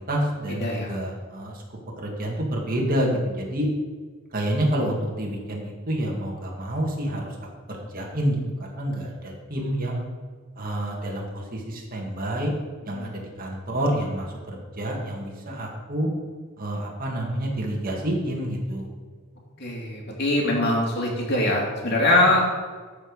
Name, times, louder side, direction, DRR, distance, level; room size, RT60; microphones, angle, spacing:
voice 1, 0.0-1.6 2.0-3.7 4.3-10.0 10.6-12.5 12.8-16.1 16.6-18.9, right 1 dB, 40° right, -1 dB, 2.0 m, -28 dB
voice 2, 0.6-1.0 12.9-13.2 19.6-22.4, left 1 dB, 50° left, -2 dB, 2.6 m, -23 dB
13.5 x 5.0 x 5.4 m, 1.5 s
head